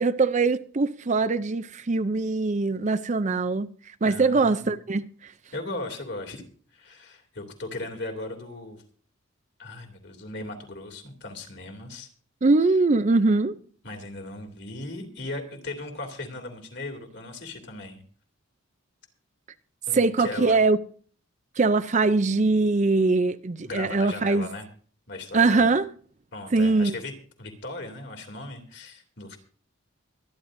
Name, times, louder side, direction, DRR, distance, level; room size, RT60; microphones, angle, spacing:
voice 1, 0.0-5.3 12.4-13.6 19.9-20.8 21.6-24.5 25.3-25.9 26.5-27.0, right 3 dB, 35° right, 0.5 m, -22 dB
voice 2, 4.1-4.7 5.5-6.4 6.7-8.8 9.6-12.1 13.8-18.0 19.9-20.6 23.6-24.7 25.1-25.7 26.3-27.1 27.4-29.4, left 2 dB, 55° left, 2.8 m, -37 dB
24.5 x 10.5 x 2.6 m
head